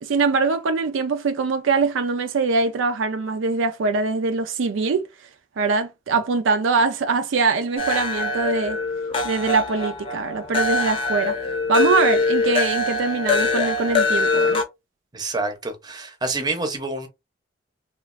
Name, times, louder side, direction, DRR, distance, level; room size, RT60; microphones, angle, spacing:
voice 1, 0.0-5.0 5.6-8.8 9.2-11.4 11.7-14.6, right 4 dB, 80° right, 0.4 m, -22 dB
sound 1, 7.8-14.6, left 3 dB, 30° left, 0.6 m, -23 dB
voice 2, 15.1-17.1, right 3 dB, 20° right, 0.6 m, -27 dB
3.0 x 2.4 x 2.4 m
head